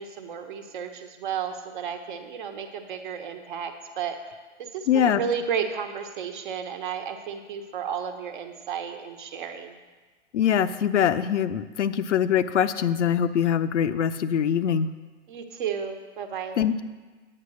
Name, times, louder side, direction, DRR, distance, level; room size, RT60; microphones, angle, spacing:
voice 1, 0.0-4.2 4.6-9.8 15.3-16.6, right 7 dB, 45° right, 6 dB, 1.2 m, -33 dB
voice 2, 4.9-5.2 10.3-14.9 16.6-16.8, left 9 dB, 75° left, 11 dB, 0.7 m, -23 dB
8.9 x 8.7 x 6.3 m, 1.3 s
hypercardioid pair, 150°, 36 cm